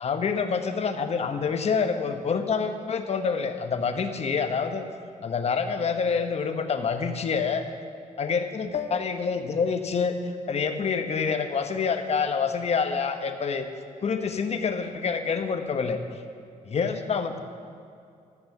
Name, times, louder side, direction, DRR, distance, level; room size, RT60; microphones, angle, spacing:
voice 1, 0.0-4.9 5.2-7.7 8.2-10.1 10.5-13.7 14.0-16.0 16.7-17.4, left 5 dB, 50° left, 7 dB, 1.1 m, -27 dB
13.0 x 7.8 x 6.7 m, 2.4 s
cardioid pair, 90°, 14 cm